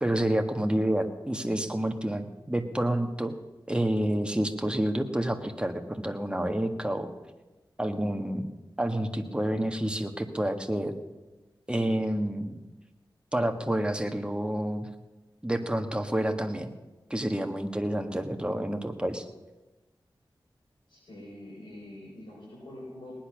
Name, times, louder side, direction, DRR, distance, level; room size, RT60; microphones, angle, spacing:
voice 1, 0.0-3.3 3.7-7.1 7.8-8.5 8.8-10.9 11.7-12.6 13.3-14.9 15.4-16.7 17.1-19.2, right 1 dB, 10° right, 5 dB, 1.5 m, -29 dB
voice 2, 20.9-23.2, left 1 dB, 65° left, -5 dB, 5.0 m, -45 dB
19.0 x 10.5 x 6.2 m, 1.1 s
wide cardioid pair, 75°, 8 cm